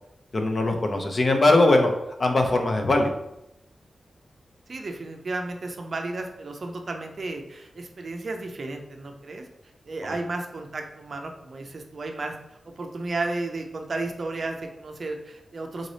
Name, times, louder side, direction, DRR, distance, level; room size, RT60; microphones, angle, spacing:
voice 1, 0.3-1.9 2.2-3.1, left 2 dB, 35° left, 3 dB, 0.6 m, -20 dB
voice 2, 4.7-9.5 9.9-12.3 12.7-15.9, right 2 dB, 45° right, 4 dB, 0.5 m, -33 dB
3.8 x 3.2 x 4.0 m, 0.89 s
wide cardioid pair, 170°, 0 cm